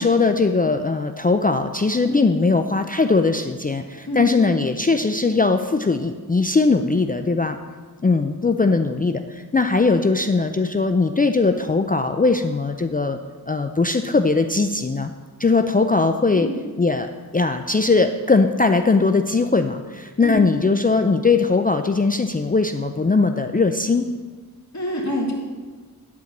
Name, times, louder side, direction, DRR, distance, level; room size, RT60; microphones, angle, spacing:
voice 1, 0.0-7.6 8.0-13.2 13.5-15.1 15.4-16.5 16.8-24.0, left 3 dB, 25° left, 6 dB, 0.4 m, -20 dB
voice 2, 24.7-25.3, left 1 dB, 50° left, -2 dB, 2.1 m, -26 dB
10.5 x 4.5 x 7.2 m, 1.4 s
wide cardioid pair, 90°, 37 cm